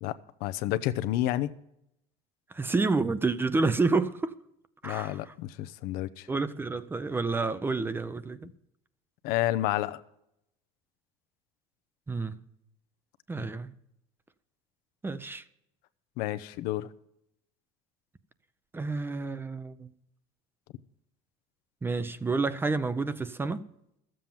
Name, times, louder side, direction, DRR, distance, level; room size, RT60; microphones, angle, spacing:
voice 1, 0.0-1.5 4.8-6.3 9.2-10.0 16.2-16.9, left 14 dB, 70° left, 0.7 m, -30 dB
voice 2, 2.5-4.3 4.8-5.3 6.3-8.5 12.1-12.4 13.3-13.7 15.0-15.4 18.7-19.9 21.8-23.6, right 3 dB, 15° right, 0.6 m, -29 dB
13.0 x 7.7 x 7.0 m
cardioid pair, 125°, 16 cm